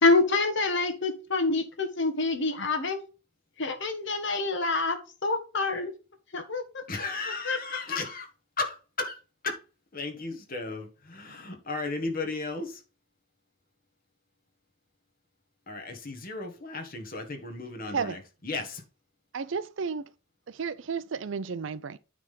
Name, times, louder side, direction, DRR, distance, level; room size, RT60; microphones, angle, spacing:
voice 1, 0.0-3.1 3.6-5.9 6.3-6.6 7.4-7.6 7.9-8.0, left 3 dB, 60° left, 1.4 m, -26 dB
voice 2, 6.9-8.3 8.6-9.2 9.4-9.6 9.9-12.8 15.7-18.8, left 3 dB, 45° left, 1.6 m, -35 dB
voice 3, 19.3-20.1 20.5-22.0, right 5 dB, 65° right, 0.5 m, -32 dB
9.2 x 3.6 x 5.6 m
head